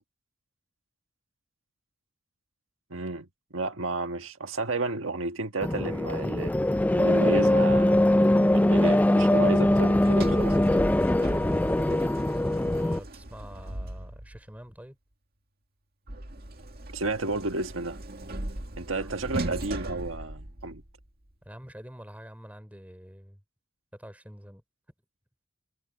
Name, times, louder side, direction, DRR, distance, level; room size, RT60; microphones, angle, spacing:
voice 1, 2.9-3.3 3.5-6.5 6.9-10.5 16.9-18.0 18.8-20.8, right 2 dB, 85° right, 1.5 m, -32 dB
sound 1, 5.6-13.0, left 1 dB, 10° left, 0.3 m, -22 dB
Sliding door, 9.6-14.5 16.1-21.0, right 1 dB, 50° right, 2.0 m, -38 dB
voice 2, 12.6-15.0 19.0-19.2 21.5-23.4 23.9-24.6, equal, 10° right, 3.4 m, -46 dB
head